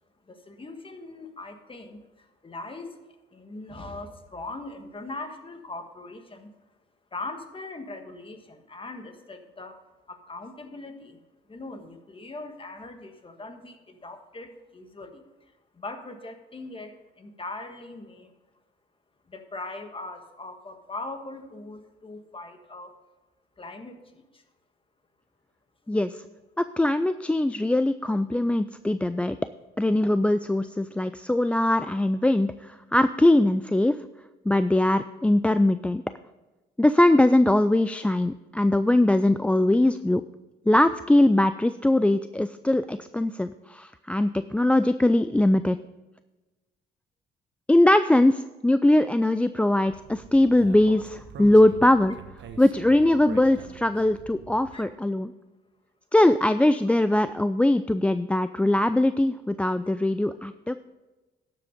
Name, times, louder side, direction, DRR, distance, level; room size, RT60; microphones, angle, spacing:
voice 1, 0.2-3.0 3.3-6.5 7.1-9.8 10.1-11.2 11.5-18.3 19.3-22.9 23.6-24.4 54.7-54.8, left 2 dB, 25° left, 6 dB, 1.5 m, -40 dB
voice 2, 25.9-26.2 26.6-29.4 29.8-34.0 34.5-36.0 36.8-40.2 40.7-45.8 47.7-52.2 52.6-55.3 56.1-60.8, left 1 dB, 5° left, 11 dB, 0.3 m, -21 dB
Speech, 49.8-54.8, right 6 dB, 65° right, 1.2 m, -45 dB
11.5 x 7.6 x 5.2 m, 1.1 s
cardioid pair, 90°, 20 cm